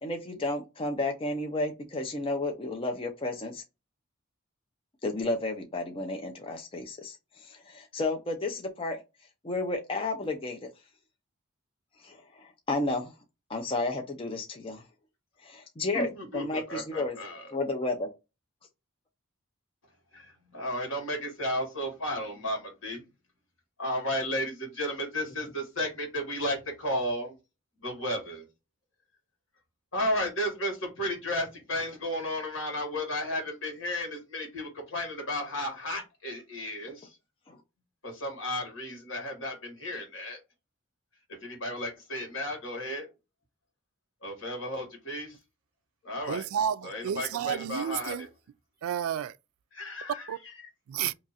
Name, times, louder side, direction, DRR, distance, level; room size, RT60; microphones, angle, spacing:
voice 1, 0.0-3.6 5.0-9.0 9.4-10.7 12.0-13.1 13.5-14.8 15.4-17.2 17.5-18.1 37.5-37.6, left 2 dB, 25° left, 0.5 m, -32 dB
voice 2, 15.9-17.4 20.1-23.0 23.8-27.3 27.8-28.4 29.9-37.1 38.0-40.4 41.4-43.1 44.2-45.3 46.0-46.4 46.8-48.1 49.7-50.2, left 1 dB, 65° left, 1.7 m, -33 dB
voice 3, 46.3-48.3 48.8-49.4 50.3-50.4 50.9-51.1, right 9 dB, 85° right, 0.3 m, -31 dB
2.9 x 2.4 x 4.0 m
head